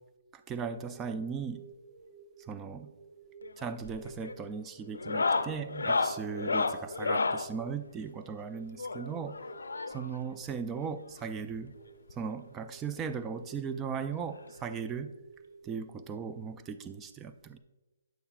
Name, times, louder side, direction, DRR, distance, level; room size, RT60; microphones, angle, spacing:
voice 1, 0.3-1.6 2.5-2.9 3.6-9.4 9.9-11.7 12.1-15.1 15.6-17.6, right 6 dB, 15° right, 9 dB, 0.3 m, -37 dB
sound 1, 0.8-16.5, right 6 dB, 60° right, 1.6 m, -54 dB
sound 2, 3.4-3.8 4.0-4.4 4.9-7.5 8.8-10.2 11.2-11.3 11.5-11.6 12.1-12.2 13.5-13.6 14.9-15.0, left 4 dB, 85° left, 0.4 m, -31 dB
9.2 x 6.8 x 2.4 m, 1.2 s
hypercardioid pair, 150°, 0 cm